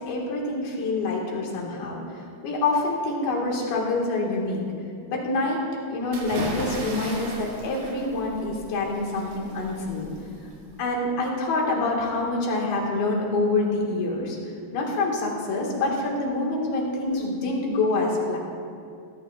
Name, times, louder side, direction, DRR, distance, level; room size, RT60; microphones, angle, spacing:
voice 1, 0.0-2.0 2.4-4.7 5.1-5.6 5.9-10.1 10.8-14.4 14.7-18.4, left 2 dB, 70° left, -2 dB, 3.8 m, -26 dB
sound 1, 6.1-10.9, right 2 dB, 60° right, 3.6 m, -36 dB
19.5 x 14.5 x 2.5 m, 2.3 s
omnidirectional pair, 4.6 m